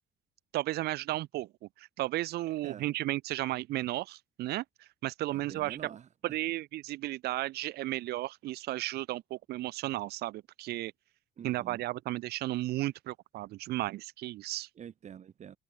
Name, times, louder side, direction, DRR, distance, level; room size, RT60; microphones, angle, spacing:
voice 1, 0.5-1.5 1.8-4.6 5.0-5.8 6.2-10.9 11.4-14.7, right 16 dB, 70° right, 0.6 m, -34 dB
voice 2, 2.5-2.8 5.3-6.1 11.4-11.8 14.7-15.6, right 8 dB, 45° right, 1.3 m, -47 dB
cardioid pair, 110°, 17 cm